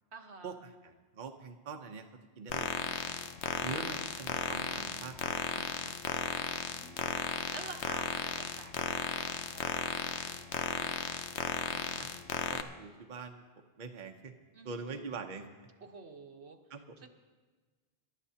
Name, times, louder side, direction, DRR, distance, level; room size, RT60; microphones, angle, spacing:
voice 1, 0.1-0.5 3.4-4.1 6.3-10.3 10.6-11.1 14.5-15.0 15.8-16.6 17.0-17.1, right 4 dB, 90° right, 3 dB, 1.5 m, -51 dB
voice 2, 0.8-2.0 2.4-3.2 3.6-5.9 11.7-13.4 13.8-14.3 14.6-15.5 16.7-16.8, right 5 dB, 50° right, 4 dB, 0.9 m, -44 dB
sound 1, 2.5-12.6, left 7 dB, 85° left, 1.0 m, -35 dB
24.5 x 12.0 x 2.8 m, 1.4 s
omnidirectional pair, 1.1 m